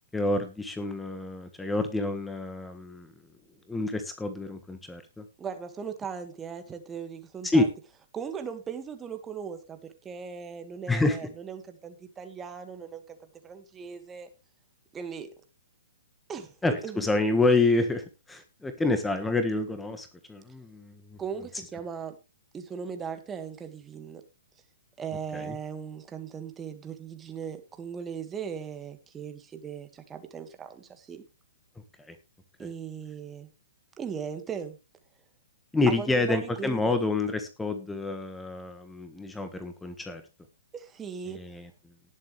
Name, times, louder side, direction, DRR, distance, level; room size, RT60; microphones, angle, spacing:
voice 1, 0.1-3.1 3.7-5.2 7.4-7.6 10.9-11.2 16.6-21.2 25.3-25.6 32.1-32.2 32.6-32.7 35.7-40.2 41.3-41.7, left 2 dB, 5° left, 8 dB, 1.4 m, -28 dB
voice 2, 5.4-7.7 8.1-13.2 13.4-14.3 14.9-15.3 16.3-16.5 16.8-17.0 21.2-22.2 22.5-24.2 25.0-31.2 32.6-33.5 34.0-34.8 35.9-37.0 40.7-41.4, right 6 dB, 15° right, 8 dB, 1.8 m, -38 dB
18.5 x 7.5 x 3.3 m, 0.28 s
figure-of-eight pair, 120°, 0 cm